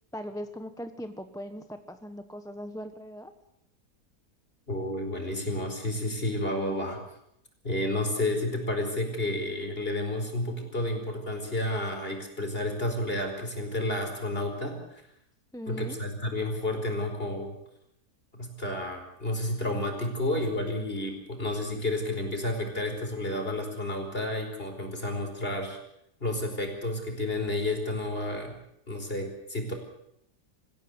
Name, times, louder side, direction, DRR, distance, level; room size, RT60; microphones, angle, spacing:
voice 1, 0.1-3.3 15.5-16.0, equal, 5° left, 8 dB, 0.9 m, -39 dB
voice 2, 4.7-7.0 7.6-15.0 15.7-17.6 18.3-25.8 26.2-28.5 28.9-29.7, left 1 dB, 35° left, 4 dB, 5.0 m, -31 dB
26.5 x 16.0 x 8.0 m, 0.79 s
omnidirectional pair, 1.7 m